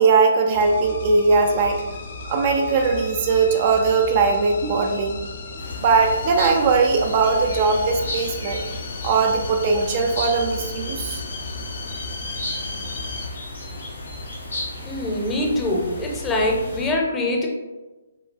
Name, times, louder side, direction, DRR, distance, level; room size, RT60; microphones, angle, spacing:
voice 1, 0.0-1.8 2.2-5.2 5.8-8.6 9.0-11.2 17.0-17.2, right 4 dB, 40° right, 3 dB, 0.4 m, -20 dB
sound 1, 0.5-13.3, left 3 dB, 55° left, 0.5 m, -35 dB
sound 2, 5.6-16.9, left 2 dB, 80° left, 1.1 m, -34 dB
voice 2, 14.8-17.5, left 1 dB, 15° left, -1 dB, 0.6 m, -23 dB
5.0 x 2.2 x 2.2 m, 1.2 s
figure-of-eight pair, 135°, 0 cm